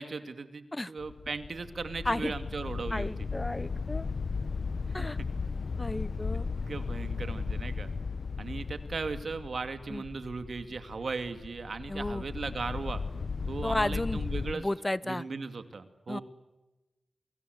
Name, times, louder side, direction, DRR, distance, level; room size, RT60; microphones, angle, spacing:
voice 1, 0.0-3.1 4.9-5.1 6.7-7.9 8.4-13.0 13.5-14.7 15.0-16.2, right 4 dB, 70° right, 9 dB, 2.5 m, -37 dB
sound 1, 1.0-14.5, left 4 dB, 70° left, 0.9 m, -36 dB
voice 2, 2.9-4.1 4.9-5.2 5.8-6.5 9.9-10.0 11.9-12.2 13.6-14.2 14.5-15.2 16.1-16.2, left 1 dB, 20° left, 19 dB, 0.9 m, -32 dB
29.0 x 24.5 x 8.1 m, 1.0 s
cardioid pair, 55°, 0 cm